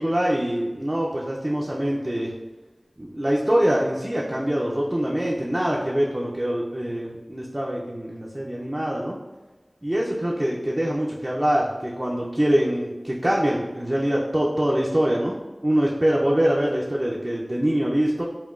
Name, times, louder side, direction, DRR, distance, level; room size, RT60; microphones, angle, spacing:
voice 1, 0.0-2.3 3.0-9.2 9.8-15.4 15.6-18.2, right 1 dB, 35° right, -4 dB, 0.5 m, -24 dB
5.6 x 2.2 x 2.4 m, 1.2 s
wide cardioid pair, 45°, 0 cm